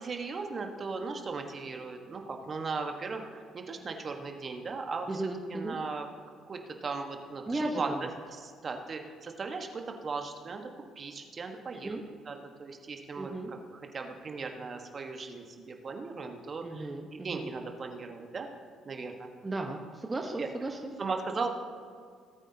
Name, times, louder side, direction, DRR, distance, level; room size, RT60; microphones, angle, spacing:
voice 1, 0.0-5.2 5.5-6.1 6.5-10.7 11.0-12.0 12.3-18.5 18.8-19.3 20.4-20.5 21.0-21.5, right 4 dB, 45° right, 4 dB, 1.3 m, -37 dB
voice 2, 5.1-5.8 7.5-8.1 11.8-12.0 13.2-13.5 16.6-17.5 19.4-20.8, right 2 dB, 25° right, 2 dB, 1.1 m, -35 dB
18.5 x 8.9 x 2.9 m, 2.1 s
hypercardioid pair, 50°, 0 cm